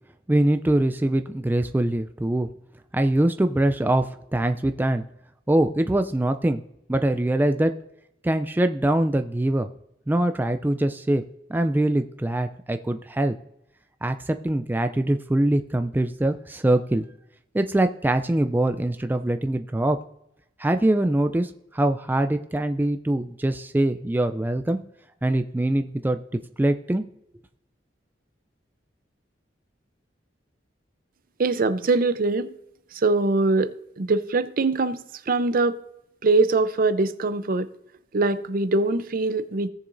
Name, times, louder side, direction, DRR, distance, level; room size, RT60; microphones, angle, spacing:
voice 1, 0.3-2.5 2.9-5.0 5.5-6.6 6.9-7.7 8.2-9.7 10.1-11.2 11.5-13.4 14.0-17.0 17.5-20.0 20.6-24.8 25.2-26.2 26.6-27.0, right 1 dB, 10° right, 0.3 m, -23 dB
voice 2, 31.4-32.6 32.9-35.8 36.2-37.7 38.1-39.7, right 3 dB, 50° right, 0.6 m, -23 dB
17.0 x 6.9 x 2.6 m
head